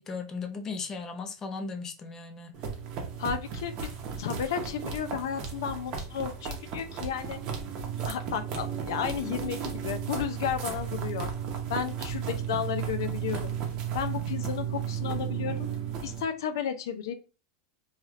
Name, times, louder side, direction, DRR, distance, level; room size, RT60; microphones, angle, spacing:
voice 1, 0.0-2.5, left 4 dB, 20° left, 0.5 m, -36 dB
sound 1, 2.5-16.2, right 7 dB, 45° right, 0.8 m, -34 dB
voice 2, 3.2-3.9 4.2-7.4 8.1-11.3 11.7-13.5 13.9-15.7 16.0-17.1, left 8 dB, 80° left, 0.4 m, -33 dB
3.1 x 2.8 x 2.4 m
supercardioid pair, 140°, 2 cm